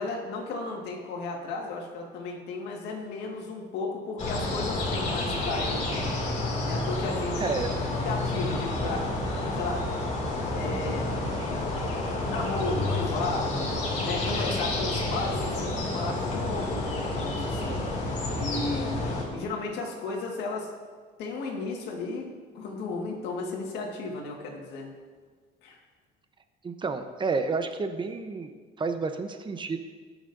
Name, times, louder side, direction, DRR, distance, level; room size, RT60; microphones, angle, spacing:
voice 1, 0.0-6.1 6.6-7.4 8.1-9.1 9.5-9.9 10.5-11.2 12.3-17.8 18.3-19.0 19.3-20.7 21.2-22.3 22.5-24.9 25.6-25.8, left 3 dB, 85° left, 1 dB, 1.8 m, -34 dB
sound 1, 4.2-19.2, left 2 dB, 45° left, 2.6 m, -29 dB
voice 2, 7.4-7.7 26.6-28.5 28.8-29.8, right 4 dB, 30° right, 7 dB, 0.8 m, -30 dB
18.5 x 6.3 x 2.7 m, 1.5 s
cardioid pair, 110°, 17 cm